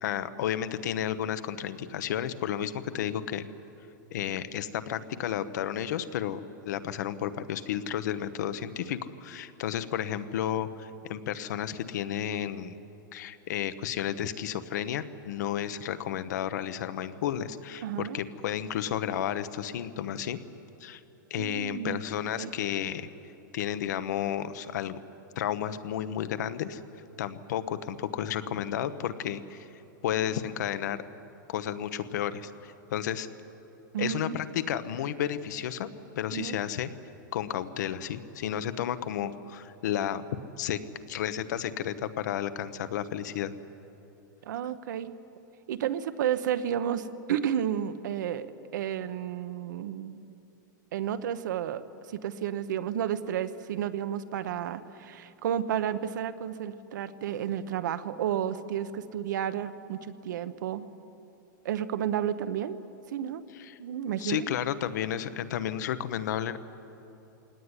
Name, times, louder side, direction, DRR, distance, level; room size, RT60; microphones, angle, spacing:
voice 1, 0.0-3.5 4.1-12.8 13.1-20.4 20.8-21.0 21.3-23.1 23.5-25.0 25.4-26.8 27.2-29.7 30.0-31.0 31.5-33.3 34.0-35.9 36.2-36.9 37.3-40.2 40.6-40.8 41.1-43.5 63.5-63.7 64.2-66.6, left 10 dB, 60° left, 12 dB, 1.1 m, -32 dB
voice 2, 17.8-18.2 21.3-22.0 22.4-22.5 33.9-34.4 36.3-36.6 44.5-45.1 45.7-50.2 50.9-51.8 52.1-60.9 61.6-62.8 63.1-63.4 63.8-64.4, right 9 dB, 65° right, 11 dB, 1.0 m, -31 dB
22.5 x 18.0 x 9.8 m, 3.0 s
supercardioid pair, 170°, 11 cm